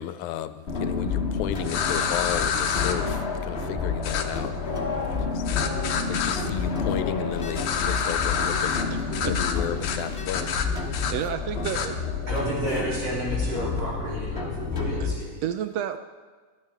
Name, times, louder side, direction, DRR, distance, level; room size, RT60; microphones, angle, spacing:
voice 1, 0.0-5.4 6.1-8.8 9.2-10.6, left 11 dB, 85° left, 11 dB, 2.0 m, -33 dB
sound 1, 0.7-15.1, left 4 dB, 45° left, 0.8 m, -29 dB
sound 2, 1.6-2.9 4.0-4.2 5.5-6.4 7.5-8.8 9.1-9.5 9.8-10.0 10.2-11.1 11.6-11.9, left 7 dB, 70° left, 1.4 m, -28 dB
sound 3, 4.5-10.2 10.5-10.8, left 3 dB, 20° left, 3.8 m, -40 dB
voice 2, 8.9-9.4 11.1-11.9 15.0-15.1 15.4-16.0, right 10 dB, 80° right, 9 dB, 1.5 m, -30 dB
voice 3, 12.3-15.3, right 1 dB, 50° right, -7 dB, 4.7 m, -31 dB
19.0 x 11.5 x 3.5 m, 1.5 s
omnidirectional pair, 3.4 m